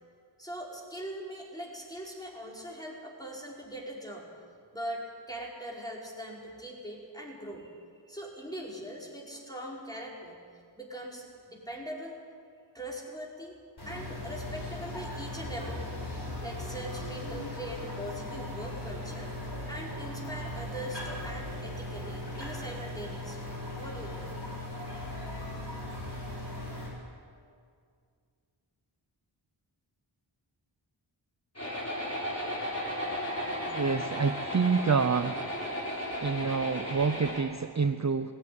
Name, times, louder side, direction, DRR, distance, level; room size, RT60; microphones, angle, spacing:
voice 1, 0.4-4.3 4.7-7.7 8.1-10.4 10.8-12.2 12.7-13.6 13.9-16.0 16.4-19.3 19.7-24.4, equal, 10° left, -3 dB, 5.0 m, -41 dB
sound 1, 13.8-26.9, left 1 dB, 60° left, 7.5 m, -38 dB
sound 2, 31.6-37.4, left 1 dB, 30° left, 4.6 m, -35 dB
voice 2, 33.7-35.4 36.2-38.3, right 5 dB, 35° right, 9 dB, 0.7 m, -27 dB
19.0 x 17.0 x 9.5 m, 2.2 s
wide cardioid pair, 60°, 47 cm